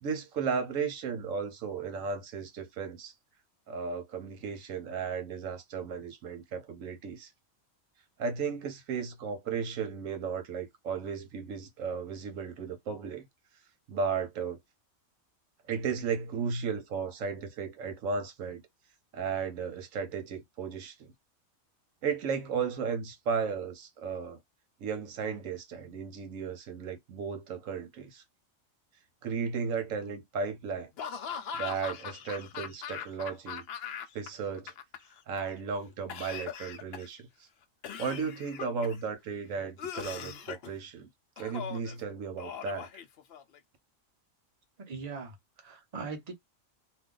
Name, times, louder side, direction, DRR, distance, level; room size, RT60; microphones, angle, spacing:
voice 1, 0.0-3.1 3.7-7.3 8.2-13.3 13.9-14.6 15.7-18.6 19.1-20.9 22.0-24.4 24.8-28.2 29.2-30.9 31.6-33.6 34.1-34.7 35.3-37.2 38.0-41.1 41.4-42.9, right 5 dB, 80° right, 1.2 m, -35 dB
Laughter / Cough, 31.0-34.3 34.5-35.4 36.1-37.2 37.8-39.0 39.8-40.7 41.4-41.9 42.4-43.6, left 8 dB, 60° left, 0.7 m, -40 dB
voice 2, 44.9-46.3, right 5 dB, 35° right, 0.9 m, -40 dB
2.7 x 2.3 x 3.6 m
omnidirectional pair, 1.4 m